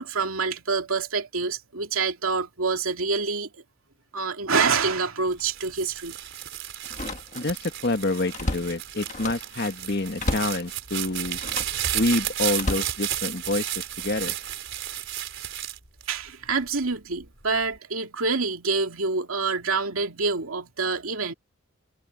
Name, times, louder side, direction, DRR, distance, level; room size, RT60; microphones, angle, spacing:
voice 1, 0.0-3.6 4.1-6.2 16.1-21.3, right 4 dB, 85° right, 2.5 m, -26 dB
sound 1, 5.3-16.7 17.2-17.8, right 11 dB, 60° right, 4.8 m, -33 dB
Slam, 5.4-5.5 6.8-7.6 8.0-9.5 10.2-10.6 11.4-11.8 12.5-13.6 14.2-14.5, left 1 dB, 35° left, 1.5 m, -33 dB
voice 2, 7.3-11.4 11.9-14.3, left 2 dB, 50° left, 1.6 m, -27 dB
head